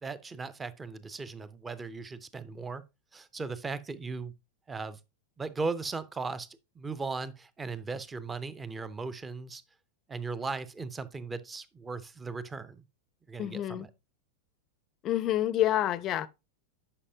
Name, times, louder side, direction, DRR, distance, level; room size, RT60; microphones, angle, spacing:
voice 1, 0.0-2.8 3.1-4.3 4.7-5.0 5.4-6.5 6.8-9.6 10.1-12.8 13.3-13.9, right 4 dB, 15° right, 0.5 m, -37 dB
voice 2, 13.4-13.9 15.0-16.3, left 13 dB, 35° left, 0.5 m, -28 dB
9.8 x 5.2 x 2.7 m
figure-of-eight pair, 90°, 0 cm